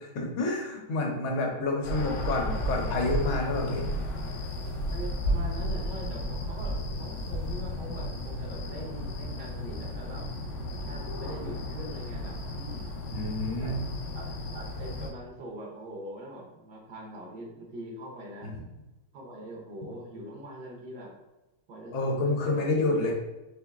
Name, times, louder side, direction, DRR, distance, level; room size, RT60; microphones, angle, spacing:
voice 1, 0.0-3.9 13.1-13.9 18.4-18.5 21.9-23.1, left 2 dB, 85° left, 0 dB, 1.7 m, -29 dB
voice 2, 1.4-2.0 4.9-10.4 10.9-12.9 13.6-13.8 14.1-18.5 19.1-21.2 21.7-23.1, right 1 dB, 65° right, -1 dB, 1.5 m, -43 dB
sound 1, 1.8-15.1, equal, 70° left, 0.7 m, -33 dB
4.4 x 2.9 x 3.5 m, 1.0 s
omnidirectional pair, 2.1 m